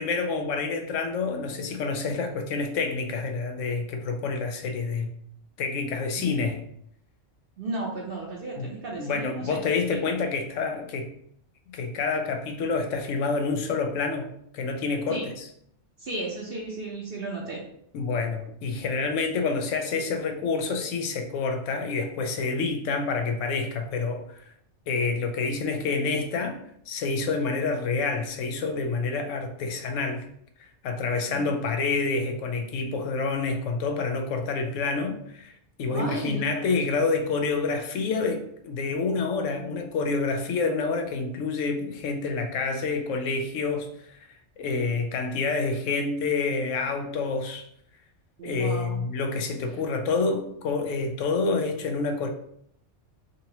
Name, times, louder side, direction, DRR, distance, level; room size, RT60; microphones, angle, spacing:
voice 1, 0.0-5.1 5.6-6.6 8.6-8.7 9.0-11.1 11.7-14.3 14.5-15.4 17.9-24.5 24.9-26.6 26.9-30.3 30.8-44.2 44.6-47.7 48.4-52.3, left 4 dB, 90° left, 5 dB, 1.0 m, -28 dB
voice 2, 7.6-9.6 15.1-15.3 16.0-17.6 31.3-31.5 35.9-36.5 48.4-49.1, right 2 dB, 55° right, -3 dB, 0.8 m, -34 dB
3.9 x 2.7 x 2.8 m, 0.68 s
omnidirectional pair, 1.3 m